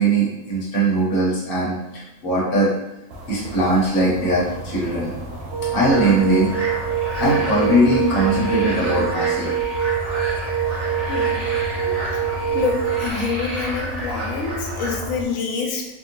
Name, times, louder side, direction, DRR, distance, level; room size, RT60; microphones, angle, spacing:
voice 1, 0.0-2.7 3.3-5.1 5.7-6.5 7.2-9.5 10.7-10.8 11.7-12.6, right 1 dB, 45° left, -6 dB, 1.1 m, -20 dB
sound 1, 3.1-15.2, right 1 dB, 90° right, 1.1 m, -33 dB
sound 2, 5.5-13.1, right 9 dB, 60° right, 0.9 m, -25 dB
sound 3, 5.9-15.0, right 1 dB, 40° right, 1.4 m, -32 dB
voice 2, 11.1-11.5 12.5-15.9, left 5 dB, 75° left, 1 dB, 1.0 m, -26 dB
3.4 x 2.3 x 2.9 m, 0.91 s
omnidirectional pair, 1.5 m